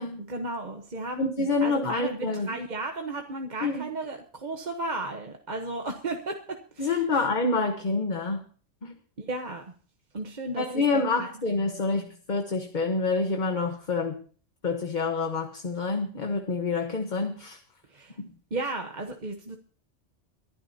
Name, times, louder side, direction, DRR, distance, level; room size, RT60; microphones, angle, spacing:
voice 1, 0.3-7.2 9.2-9.6 10.1-10.7 10.9-11.3 11.7-11.8 17.9-18.2 18.5-19.6, right 2 dB, 40° right, 3 dB, 1.1 m, -34 dB
voice 2, 1.2-2.6 3.6-3.9 6.8-8.4 8.8-8.9 10.6-14.1 14.6-17.6, left 3 dB, 40° left, 5 dB, 1.3 m, -27 dB
22.5 x 11.5 x 2.8 m, 0.41 s
omnidirectional pair, 1.3 m